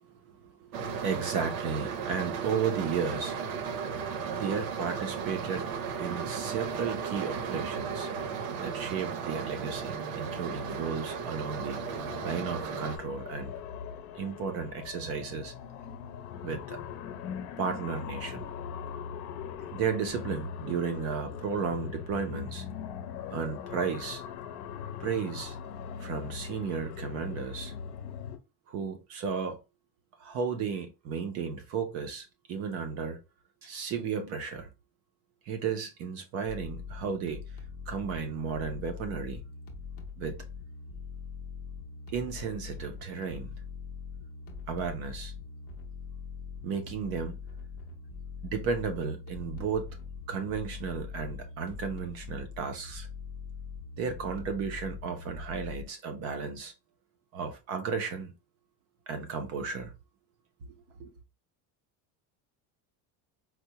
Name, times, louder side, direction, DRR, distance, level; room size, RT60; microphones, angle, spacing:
voice 1, 0.3-3.6 4.3-5.7 6.0-8.1 8.6-11.9 12.2-13.5 14.1-15.5 16.4-16.8 17.6-18.5 19.7-22.6 23.3-24.2 25.0-25.6 26.0-27.7 28.7-29.6 30.2-33.2 33.6-34.7 35.5-37.4 37.9-39.4 40.2-40.4 42.1-43.5 44.7-45.3 46.6-47.4 48.4-49.9 50.3-53.1 54.0-56.7 57.3-58.3 59.1-59.9 61.0-61.1, right 6 dB, 35° right, 0.4 m, -34 dB
sound 1, 0.7-13.0, right 6 dB, 70° right, 0.7 m, -35 dB
Darkness Of the mind, 9.4-28.4, left 7 dB, 75° left, 0.7 m, -41 dB
sound 2, 36.5-55.9, left 5 dB, 30° left, 0.5 m, -42 dB
4.5 x 2.0 x 2.8 m
cardioid pair, 175°, 45 cm